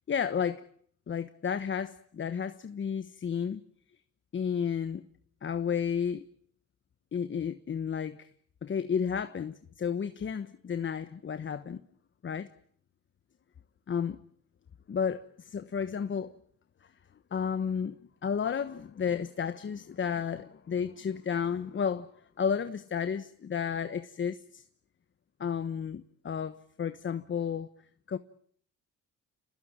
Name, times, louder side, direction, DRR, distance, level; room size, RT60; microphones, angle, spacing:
voice 1, 0.1-0.6 1.1-3.6 4.3-5.1 5.4-6.2 7.1-8.3 8.6-11.8 12.2-12.5 13.9-14.2 14.9-16.3 17.3-17.9 18.2-22.1 22.4-24.6 25.4-27.7 28.1-28.2, left 7 dB, 40° left, 1.2 m, -32 dB
29.5 x 20.0 x 8.9 m
cardioid pair, 90°, 30 cm